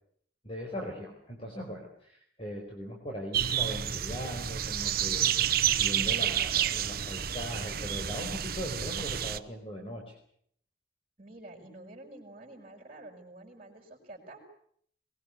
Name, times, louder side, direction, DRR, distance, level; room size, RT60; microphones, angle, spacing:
voice 1, 0.4-10.1, equal, 30° left, 0 dB, 4.8 m, -39 dB
sound 1, 3.3-9.4, right 10 dB, 55° right, 1.0 m, -29 dB
voice 2, 11.2-14.5, right 1 dB, 35° right, -2 dB, 6.3 m, -49 dB
23.0 x 21.5 x 8.5 m, 0.64 s
head